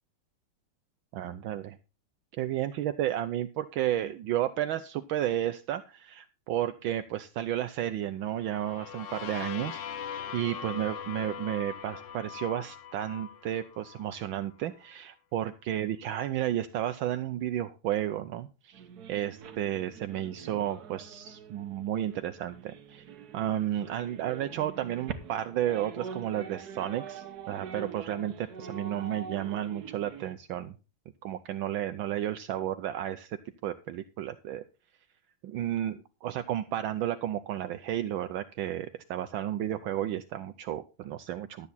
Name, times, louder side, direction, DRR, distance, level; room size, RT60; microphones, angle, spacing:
voice 1, 1.1-1.8 2.3-9.8 10.3-23.1 23.3-30.7 31.2-34.6 35.4-41.7, right 12 dB, 75° right, 8 dB, 1.4 m, -32 dB
sound 1, 8.4-14.2, left 8 dB, 70° left, 0.7 m, -41 dB
sound 2, 18.7-30.4, right 6 dB, 55° right, 1.4 m, -44 dB
12.5 x 8.4 x 4.1 m, 0.31 s
omnidirectional pair, 2.3 m